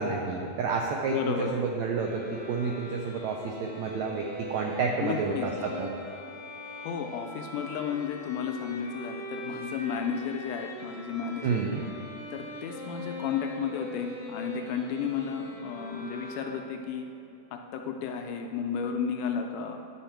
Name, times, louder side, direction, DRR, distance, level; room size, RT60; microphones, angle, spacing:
voice 1, 0.0-5.9 11.4-11.8, right 4 dB, 90° right, 1 dB, 1.6 m, -30 dB
voice 2, 1.1-1.6 5.0-5.5 6.8-11.6 12.3-17.1 17.5-19.8, left 7 dB, 80° left, 4 dB, 1.9 m, -33 dB
sound 1, 2.0-17.0, left 1 dB, 55° left, 1.0 m, -42 dB
11.0 x 5.7 x 4.4 m, 2.7 s
omnidirectional pair, 3.9 m